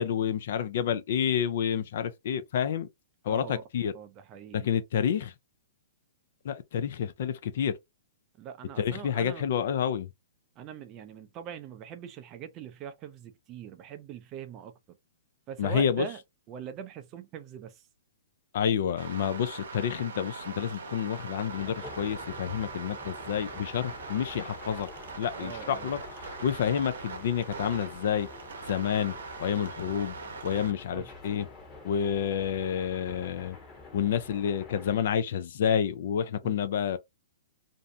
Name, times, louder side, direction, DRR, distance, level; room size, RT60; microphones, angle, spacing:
voice 1, 0.0-2.9 3.2-3.9 4.5-5.3 6.4-7.7 8.8-10.1 15.6-16.0 18.5-24.9 25.2-26.0 26.4-28.3 28.7-29.1 29.4-30.1 30.4-31.5 31.8-33.6 33.9-37.0, left 8 dB, 60° left, 0.4 m, -29 dB
voice 2, 3.3-3.6 3.9-4.7 8.4-9.5 10.6-14.7 15.5-16.2 16.5-17.9 25.3-25.9 30.9-31.1 36.4-36.6, right 7 dB, 30° right, 0.4 m, -42 dB
sound 1, 19.0-30.7, right 4 dB, 75° right, 0.7 m, -42 dB
sound 2, 21.5-35.0, left 3 dB, 20° left, 0.9 m, -47 dB
2.6 x 2.1 x 2.6 m
hypercardioid pair, 140°, 0 cm